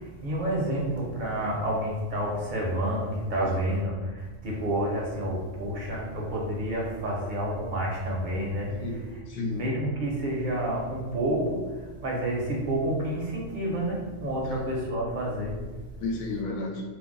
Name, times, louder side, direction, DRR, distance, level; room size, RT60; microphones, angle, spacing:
voice 1, 0.2-3.9 4.4-8.7 9.5-11.6 12.0-15.5, right 1 dB, 50° right, -3 dB, 0.6 m, -29 dB
voice 2, 3.4-3.8 8.8-9.6 16.0-16.8, left 3 dB, 90° left, 0 dB, 1.0 m, -33 dB
2.5 x 2.0 x 3.7 m, 1.3 s
omnidirectional pair, 1.4 m